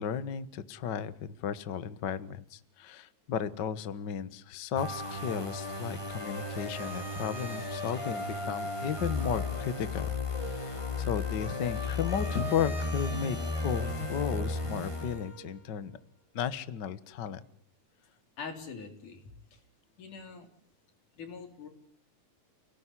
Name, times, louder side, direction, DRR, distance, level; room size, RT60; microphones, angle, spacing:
voice 1, 0.0-13.4 13.6-16.0 16.3-17.4, left 8 dB, 50° left, 14 dB, 1.4 m, -34 dB
sound 1, 4.8-15.6, left 2 dB, 10° left, 3.7 m, -35 dB
voice 2, 18.4-19.6 20.0-20.5 21.2-21.7, left 5 dB, 80° left, 5 dB, 5.3 m, -44 dB
29.5 x 19.0 x 9.9 m, 0.62 s
omnidirectional pair, 3.5 m